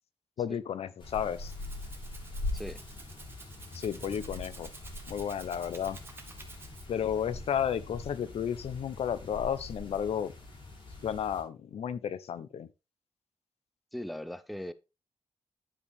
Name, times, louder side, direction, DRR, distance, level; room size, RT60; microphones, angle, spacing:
voice 1, 0.4-1.5 3.7-4.7 5.1-6.0 6.9-10.3 11.0-12.7, left 8 dB, 80° left, 0.6 m, -32 dB
sound 1, 1.0-11.4, left 2 dB, 50° left, 2.9 m, -42 dB
Rattle (instrument), 1.2-7.1, right 3 dB, 20° right, 1.1 m, -51 dB
voice 2, 13.9-14.7, equal, ahead, 0.5 m, -39 dB
9.8 x 5.1 x 3.4 m
wide cardioid pair, 125°, 10 cm